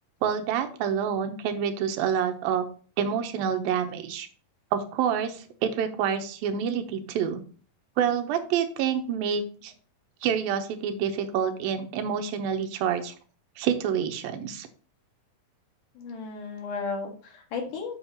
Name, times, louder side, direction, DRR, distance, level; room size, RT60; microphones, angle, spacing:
voice 1, 0.2-2.7 3.0-4.3 4.7-7.4 8.0-9.7 10.2-13.1 13.6-14.7, right 8 dB, 90° right, 8 dB, 2.6 m, -27 dB
voice 2, 16.0-18.0, left 4 dB, 65° left, 1 dB, 3.2 m, -34 dB
7.4 x 7.2 x 2.8 m, 0.40 s
omnidirectional pair, 4.1 m